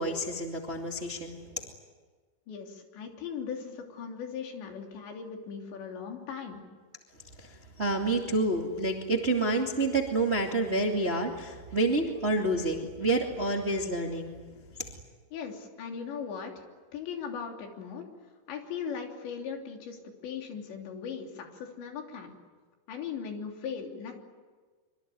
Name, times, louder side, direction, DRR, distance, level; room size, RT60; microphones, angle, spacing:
voice 1, 0.0-1.6 7.4-14.4 14.8-14.9, right 2 dB, 25° right, 1 dB, 1.6 m, -29 dB
voice 2, 2.5-6.6 15.3-16.6 16.9-18.1 18.5-20.0 20.2-22.3 22.9-24.2, left 6 dB, 75° left, 2 dB, 5.4 m, -38 dB
25.5 x 25.0 x 9.4 m, 1.4 s
omnidirectional pair, 5.1 m